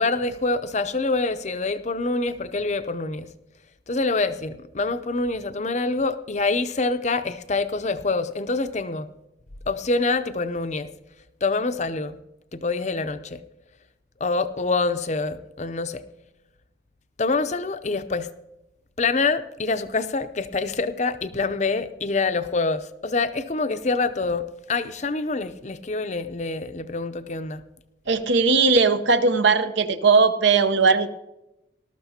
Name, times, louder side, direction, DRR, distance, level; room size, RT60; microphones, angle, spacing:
voice 1, 0.0-3.3 3.9-9.1 9.7-10.9 11.4-12.2 12.5-13.4 14.2-16.0 17.2-18.3 19.0-27.6, left 3 dB, 35° left, 11 dB, 0.6 m, -26 dB
voice 2, 28.1-31.1, right 4 dB, 65° right, 10 dB, 0.8 m, -18 dB
19.5 x 13.0 x 2.8 m, 0.93 s
head